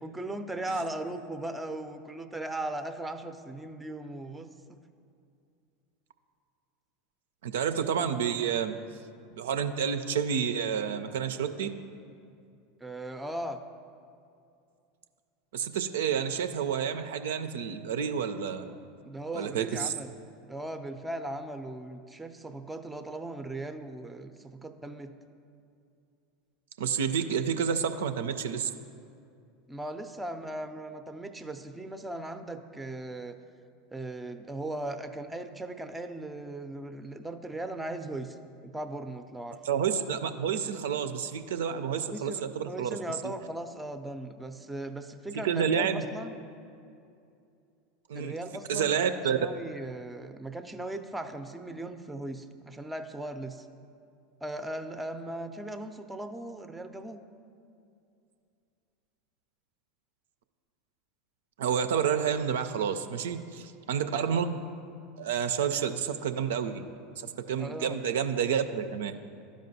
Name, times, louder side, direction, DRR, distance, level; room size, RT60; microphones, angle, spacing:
voice 1, 0.0-4.8 12.8-13.6 19.0-20.1 20.4-25.1 29.7-33.4 33.9-38.4 38.6-39.6 42.0-46.4 48.1-53.7 54.4-57.2 67.6-68.0, right 1 dB, 10° right, 8 dB, 0.4 m, -38 dB
voice 2, 7.4-8.8 9.3-11.7 15.5-18.6 19.3-19.9 26.8-28.7 39.6-43.0 45.4-46.0 48.1-48.4 48.7-49.4 61.6-64.6 65.2-66.9 67.2-69.1, right 7 dB, 70° right, 9 dB, 0.3 m, -29 dB
12.5 x 5.0 x 2.7 m, 2.5 s
figure-of-eight pair, 80°, 0 cm